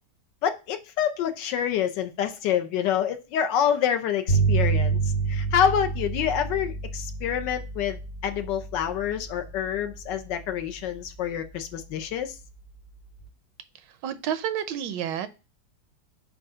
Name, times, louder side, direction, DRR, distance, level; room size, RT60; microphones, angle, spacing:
voice 1, 0.4-5.0 5.3-12.3, left 9 dB, 85° left, 7 dB, 1.4 m, -27 dB
sound 1, 4.3-13.2, right 4 dB, 60° left, 1.7 m, -30 dB
voice 2, 13.9-15.3, right 9 dB, 85° right, 12 dB, 1.3 m, -30 dB
7.4 x 2.5 x 5.4 m, 0.30 s
omnidirectional pair, 1.9 m